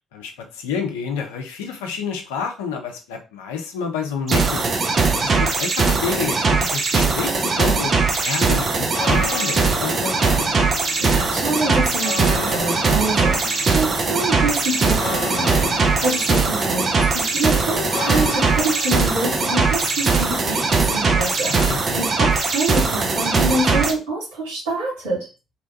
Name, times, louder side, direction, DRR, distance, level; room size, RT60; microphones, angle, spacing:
voice 1, 0.1-4.7 5.2-10.5 21.4-22.0, left 6 dB, 75° left, 4 dB, 0.5 m, -29 dB
sound 1, 4.3-23.9, right 4 dB, 40° right, 0.6 m, -20 dB
sound 2, 8.7-22.3, left 5 dB, 50° left, 0.8 m, -34 dB
voice 2, 11.0-25.3, right 2 dB, 75° right, -6 dB, 1.4 m, -26 dB
2.8 x 2.2 x 2.7 m, 0.31 s
figure-of-eight pair, 45°, 0 cm